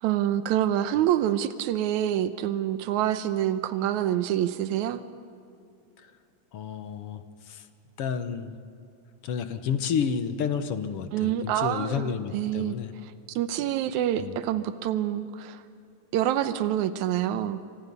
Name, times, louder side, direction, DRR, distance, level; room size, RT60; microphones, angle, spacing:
voice 1, 0.0-5.0 11.1-12.8 13.0-15.6 16.1-17.6, right 11 dB, 85° right, 11 dB, 2.2 m, -27 dB
voice 2, 6.5-7.2 7.5-7.6 8.0-8.5 9.2-12.9 14.2-14.4, left 7 dB, 60° left, 9 dB, 1.9 m, -30 dB
28.5 x 25.5 x 5.5 m, 2.6 s
omnidirectional pair, 3.3 m